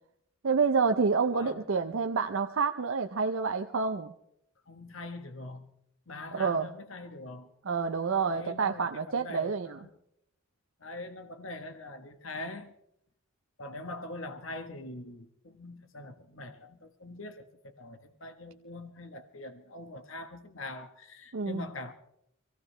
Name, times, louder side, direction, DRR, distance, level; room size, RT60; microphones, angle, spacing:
voice 1, 0.4-4.1 6.3-6.7 7.6-9.8 21.3-21.6, right 5 dB, 70° right, 0.6 m, -28 dB
voice 2, 4.7-5.7 6.1-7.5 8.3-9.9 10.8-12.7 13.6-21.9, left 2 dB, 70° left, 1.2 m, -43 dB
25.0 x 15.5 x 3.3 m
head